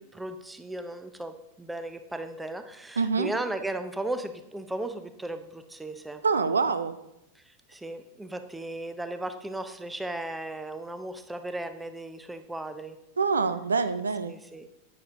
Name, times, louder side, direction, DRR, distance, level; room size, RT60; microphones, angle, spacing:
voice 1, 0.0-6.2 7.4-13.0 14.2-14.7, right 1 dB, 5° right, 9 dB, 0.8 m, -36 dB
voice 2, 3.0-3.3 6.2-7.0 13.2-14.3, right 4 dB, 75° right, 12 dB, 0.5 m, -25 dB
10.0 x 8.7 x 3.8 m, 0.87 s
figure-of-eight pair, 90°, 0 cm